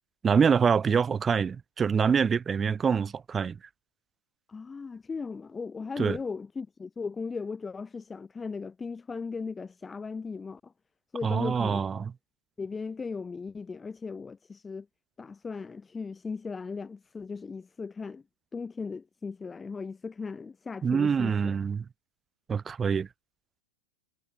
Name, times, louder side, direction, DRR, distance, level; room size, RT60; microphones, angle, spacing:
voice 1, 0.2-3.6 6.0-6.2 11.2-12.1 20.8-21.8 22.5-23.1, right 6 dB, 20° right, 0.4 m, -25 dB
voice 2, 4.5-10.7 11.1-11.9 12.6-14.9 15.2-18.2 18.5-21.6, left 4 dB, 15° left, 1.1 m, -37 dB
figure-of-eight pair, 90°, 0 cm